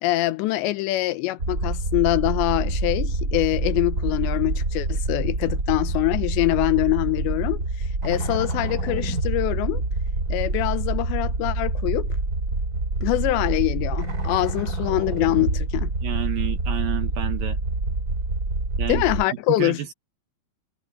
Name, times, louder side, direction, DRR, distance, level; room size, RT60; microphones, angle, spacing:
voice 1, 0.0-7.6 8.0-9.8 10.3-12.1 13.0-15.9 18.9-19.8, left 18 dB, 85° left, 3.1 m, -24 dB
sound 1, 1.4-19.2, right 2 dB, 20° right, 4.2 m, -26 dB
voice 2, 16.0-17.6 18.8-19.0 19.6-19.9, right 13 dB, 70° right, 2.4 m, -30 dB
omnidirectional pair, 5.1 m